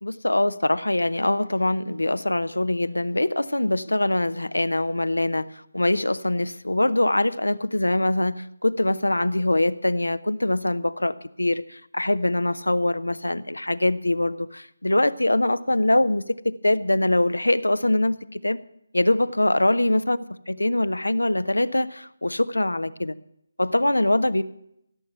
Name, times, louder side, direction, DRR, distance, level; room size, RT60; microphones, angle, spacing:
voice 1, 0.0-18.6 18.9-23.1 23.6-24.4, left 1 dB, 85° left, 13 dB, 0.7 m, -23 dB
16.5 x 7.2 x 7.9 m, 0.77 s
figure-of-eight pair, 155°, 0 cm